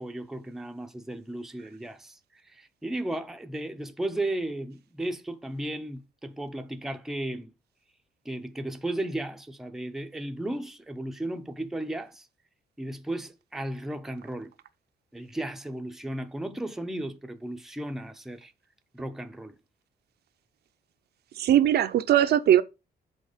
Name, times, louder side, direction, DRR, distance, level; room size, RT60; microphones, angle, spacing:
voice 1, 0.0-7.5 8.2-12.3 12.8-14.5 15.1-18.5 18.9-19.6, right 1 dB, ahead, 0.5 m, -35 dB
voice 2, 21.4-22.6, right 11 dB, 65° right, 0.5 m, -20 dB
6.4 x 4.3 x 5.0 m
cardioid pair, 155°, 18 cm